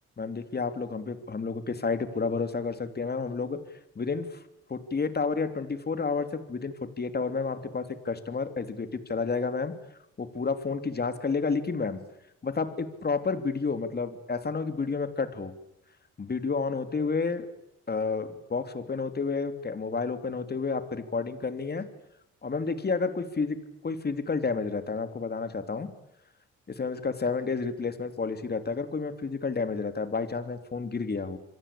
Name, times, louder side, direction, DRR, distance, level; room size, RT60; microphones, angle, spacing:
voice 1, 0.2-3.6 3.9-4.3 4.7-9.7 10.2-12.0 12.4-15.5 16.2-17.5 17.9-21.9 22.4-23.6 23.8-25.9 26.7-31.4, left 4 dB, 35° left, 10 dB, 3.2 m, -30 dB
27.0 x 22.5 x 8.6 m, 0.84 s
cardioid pair, 90°, 30 cm